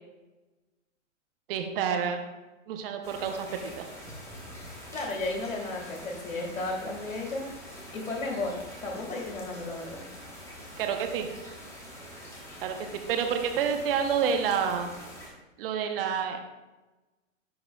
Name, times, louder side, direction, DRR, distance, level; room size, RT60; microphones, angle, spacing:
voice 1, 1.5-2.3 2.7-3.9 10.8-11.3 12.6-14.9 15.6-16.4, right 7 dB, 45° right, 5 dB, 0.9 m, -29 dB
sound 1, 3.0-15.3, equal, 5° left, 1.2 m, -45 dB
voice 2, 4.9-7.5 7.9-10.0, left 2 dB, 90° left, 0 dB, 2.1 m, -34 dB
10.5 x 4.0 x 2.3 m, 1.1 s
hypercardioid pair, 135°, 39 cm